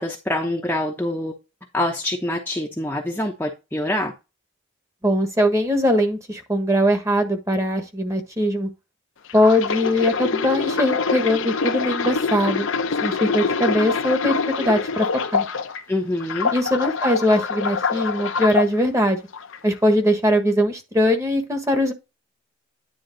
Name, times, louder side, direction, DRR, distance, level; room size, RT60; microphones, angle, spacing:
voice 1, 0.0-1.3 1.7-4.1 15.9-16.5, left 1 dB, 10° left, 0.8 m, -25 dB
voice 2, 5.0-8.7 9.3-12.7 13.0-15.1 15.3-15.4 16.5-19.2 19.6-21.9, equal, 15° right, 1.3 m, -21 dB
sound 1, 9.3-15.8 16.2-18.7 19.3-19.6, left 5 dB, 70° left, 0.8 m, -25 dB
9.8 x 3.7 x 3.8 m
head